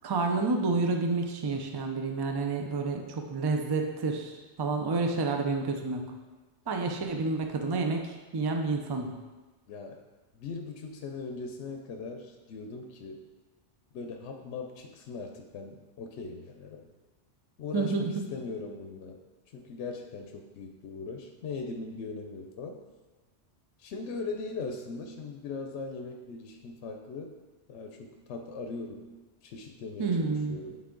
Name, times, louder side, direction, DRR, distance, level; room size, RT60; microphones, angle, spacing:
voice 1, 0.0-6.1 6.7-9.1 17.7-18.2 30.0-30.6, right 3 dB, 35° right, 4 dB, 0.3 m, -29 dB
voice 2, 9.7-10.0 10.3-13.2 13.9-16.9 17.6-19.2 19.5-22.8 23.8-27.3 27.7-29.1 29.4-30.8, left 4 dB, 75° left, 3 dB, 0.9 m, -39 dB
8.6 x 3.6 x 3.8 m, 1.2 s
omnidirectional pair, 1.2 m